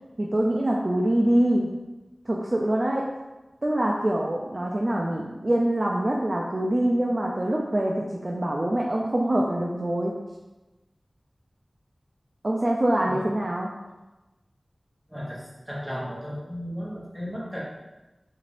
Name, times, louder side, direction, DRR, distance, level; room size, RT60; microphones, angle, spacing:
voice 1, 0.2-1.7 2.3-3.1 3.6-10.1 12.4-13.7, right 1 dB, 45° right, -2 dB, 0.4 m, -24 dB
voice 2, 15.1-17.6, equal, 5° right, -7 dB, 1.2 m, -35 dB
3.7 x 2.5 x 3.2 m, 1.1 s
wide cardioid pair, 50°, 0 cm